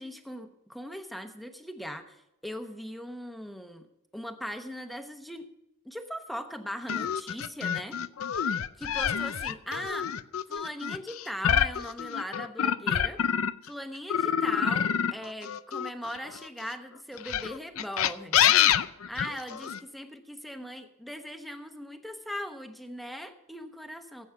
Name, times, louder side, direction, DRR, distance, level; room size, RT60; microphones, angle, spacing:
voice 1, 0.0-3.9 4.1-5.5 5.8-8.0 8.8-10.1 10.5-13.2 13.7-18.5 19.1-24.3, equal, ahead, 7 dB, 1.0 m, -39 dB
sound 1, 6.9-13.7 14.1-16.5 17.2-19.8, left 9 dB, 80° left, 0.5 m, -27 dB
16.0 x 8.1 x 5.9 m, 0.88 s
head